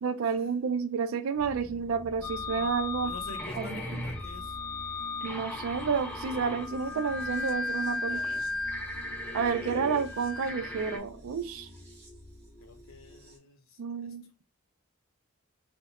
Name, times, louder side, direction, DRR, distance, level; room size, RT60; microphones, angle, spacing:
voice 1, 0.0-3.1 3.5-4.0 5.2-8.2 9.3-11.7 13.8-14.3, right 5 dB, 75° right, 0.3 m, -30 dB
sound 1, 1.3-13.4, equal, 30° right, 0.8 m, -48 dB
sound 2, 2.2-11.0, left 2 dB, 5° left, 0.3 m, -36 dB
voice 2, 3.0-4.6 8.1-8.4 12.6-13.8, left 3 dB, 70° left, 0.6 m, -48 dB
2.3 x 2.1 x 2.8 m
head